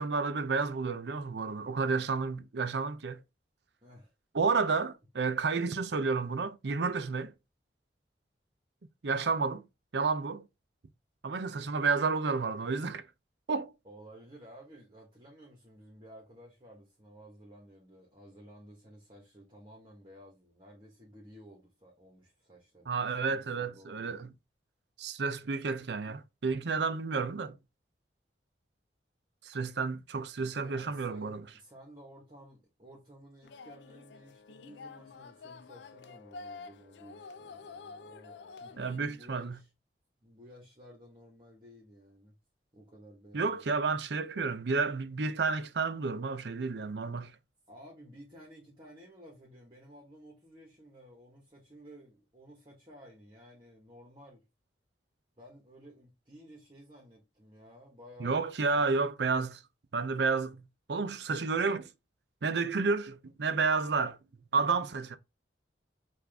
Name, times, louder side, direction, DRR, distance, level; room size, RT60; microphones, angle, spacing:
voice 1, 0.0-3.2 4.3-7.3 9.0-9.6 9.9-10.5 11.2-13.0 13.5-13.7 22.9-24.3 25.0-27.6 29.4-31.4 38.8-39.6 43.3-47.4 58.2-59.6 59.9-60.6 60.9-61.9 62.4-64.2 64.5-65.2, right 4 dB, 70° right, 0.6 m, -31 dB
voice 2, 3.8-4.1 13.8-23.0 23.3-24.2 30.4-39.7 40.2-42.3 42.7-43.7 47.7-54.4 55.4-58.5 58.7-59.1, equal, 25° right, 1.4 m, -54 dB
sound 1, 33.4-39.0, left 4 dB, 75° left, 0.4 m, -48 dB
5.9 x 2.6 x 3.4 m
head